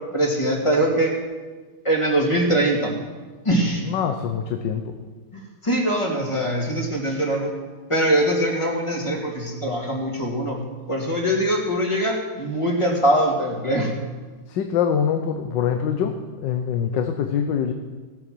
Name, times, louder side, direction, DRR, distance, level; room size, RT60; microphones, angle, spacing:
voice 1, 0.1-1.1 1.8-2.9 3.4-3.8 5.3-7.5 7.9-10.6 10.9-14.0, right 1 dB, 15° left, -1 dB, 2.5 m, -22 dB
voice 2, 3.9-5.0 14.5-17.7, left 8 dB, 75° left, 6 dB, 1.5 m, -24 dB
17.0 x 8.9 x 6.3 m, 1.4 s
omnidirectional pair, 2.0 m